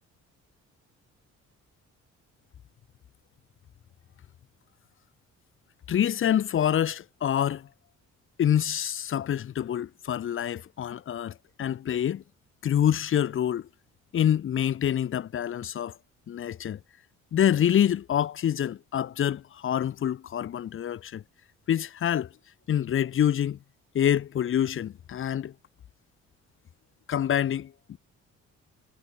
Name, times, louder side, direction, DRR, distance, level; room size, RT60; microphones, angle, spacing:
voice 1, 5.9-7.7 8.4-12.2 12.6-13.7 14.1-16.0 16.3-16.8 17.3-21.2 21.7-22.3 22.7-23.6 23.9-25.5 27.1-28.0, left 10 dB, 45° left, 0.6 m, -26 dB
cardioid pair, 90°, 30 cm